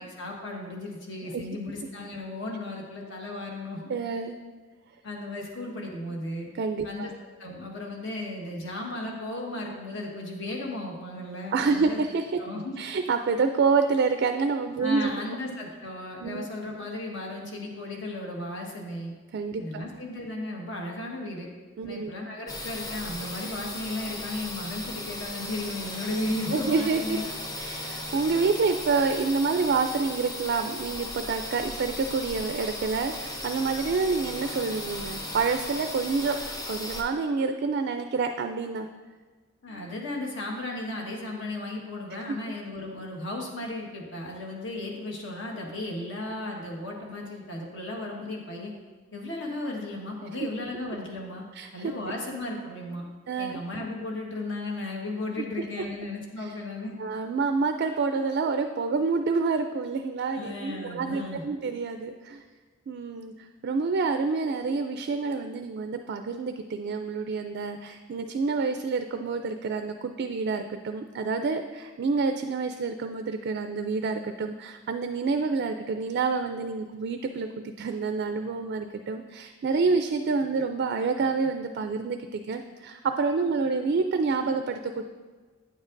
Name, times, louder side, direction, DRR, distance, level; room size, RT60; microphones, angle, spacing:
voice 1, 0.0-3.8 5.0-6.5 6.8-12.0 12.4-12.8 14.8-19.1 19.6-21.5 21.8-27.3 39.6-48.7 49.1-51.4 51.7-53.0 53.4-56.9 60.3-61.5, left 2 dB, 65° left, -1 dB, 1.4 m, -35 dB
voice 2, 3.9-4.4 6.5-7.1 11.5-12.4 12.8-15.1 16.2-16.5 19.3-19.8 21.8-22.1 26.5-27.2 27.6-36.4 36.7-38.9 51.6-51.9 53.3-53.6 57.0-62.4 62.9-63.3 63.6-85.0, right 4 dB, 50° right, 7 dB, 0.3 m, -28 dB
sound 1, 22.5-37.0, left 1 dB, 20° left, 0.6 m, -36 dB
9.2 x 7.3 x 2.6 m, 1.4 s
head